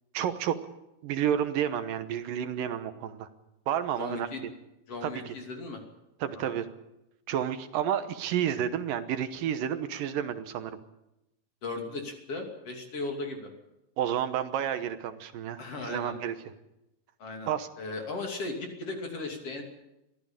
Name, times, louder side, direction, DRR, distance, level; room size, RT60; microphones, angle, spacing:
voice 1, 0.1-0.6 1.0-3.3 3.7-4.5 5.0-5.3 6.2-6.7 7.3-10.8 14.0-16.4 17.5-17.7, right 9 dB, 75° right, 10 dB, 2.7 m, -30 dB
voice 2, 4.0-4.4 4.9-5.8 6.3-6.6 11.6-13.5 15.6-16.1 17.2-17.5 17.8-19.6, left 3 dB, 45° left, 3 dB, 3.5 m, -37 dB
23.5 x 15.0 x 8.9 m, 0.91 s
omnidirectional pair, 4.1 m